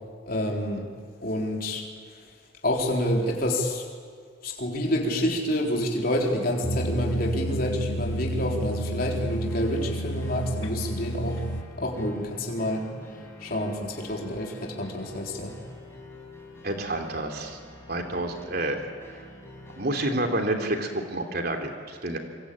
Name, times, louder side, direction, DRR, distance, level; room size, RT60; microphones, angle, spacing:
voice 1, 0.3-0.9 1.2-1.9 2.6-3.9 4.4-11.4 11.8-12.9 13.4-15.6, left 1 dB, 50° left, 0 dB, 4.0 m, -28 dB
sound 1, 6.6-11.6, right 1 dB, 75° left, 2.3 m, -30 dB
sound 2, 9.2-19.9, left 1 dB, 15° left, 6.0 m, -47 dB
voice 2, 16.6-17.6 17.9-18.8 19.1-19.2 19.8-22.2, right 1 dB, 50° right, 4 dB, 3.2 m, -29 dB
26.5 x 24.0 x 8.7 m, 2.1 s
head